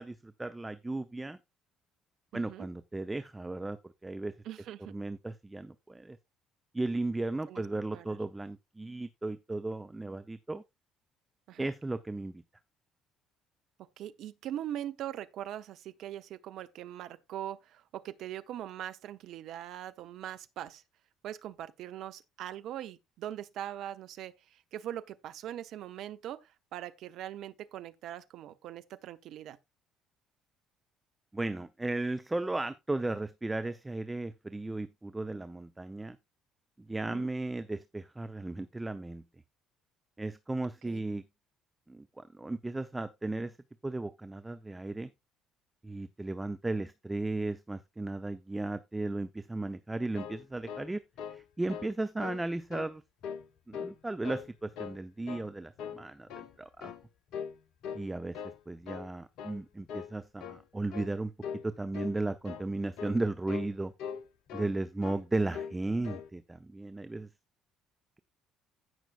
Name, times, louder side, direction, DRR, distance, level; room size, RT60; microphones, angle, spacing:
voice 1, 0.0-1.4 2.3-4.3 4.9-6.2 6.7-10.6 11.6-12.4 31.3-36.2 36.9-39.2 40.2-41.2 41.9-43.5 43.8-45.1 45.8-51.0 51.3-53.0 53.7-56.3 56.6-56.9 57.9-58.4 58.7-61.3 61.6-63.9 64.5-67.3, right 2 dB, 15° right, 0.8 m, -35 dB
voice 2, 2.3-2.7 4.4-4.9 7.5-7.7 7.9-8.2 11.5-11.7 14.0-20.8 21.2-29.6 37.0-37.3 40.9-41.0, right 11 dB, 60° right, 0.8 m, -41 dB
sound 1, 49.9-51.4 51.7-51.9 52.2-52.9 53.2-54.0 54.2-55.0 55.3-55.5 55.8-56.6 56.8-57.1 57.3-57.6 57.8-58.6 58.8-59.1 59.4-59.6 59.9-60.1 60.4-60.6 60.9-61.1 61.4-61.7 61.9-62.2 62.4-62.7 63.0-63.2 63.5-63.7 64.0-64.8 65.0-65.2 65.5-65.8 66.0-66.3, left 7 dB, 60° left, 0.9 m, -41 dB
16.0 x 6.1 x 2.4 m
figure-of-eight pair, 50°, 0 cm